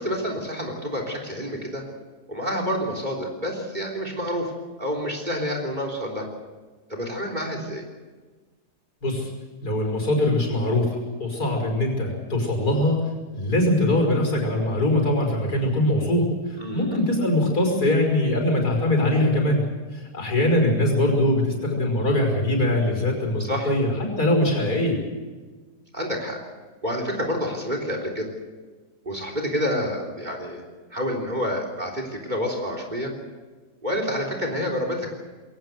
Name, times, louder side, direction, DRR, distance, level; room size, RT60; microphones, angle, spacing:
voice 1, 0.0-1.9 2.3-4.5 4.8-6.3 6.9-7.9 16.6-17.0 23.4-23.7 25.9-26.4 26.8-28.3 29.1-30.6 30.9-33.1 33.8-35.1, equal, 25° right, 3 dB, 3.6 m, -28 dB
voice 2, 9.6-13.0 13.3-19.7 19.9-25.0, left 1 dB, 70° left, 2 dB, 5.9 m, -22 dB
22.0 x 18.0 x 7.9 m, 1.3 s
omnidirectional pair, 1.7 m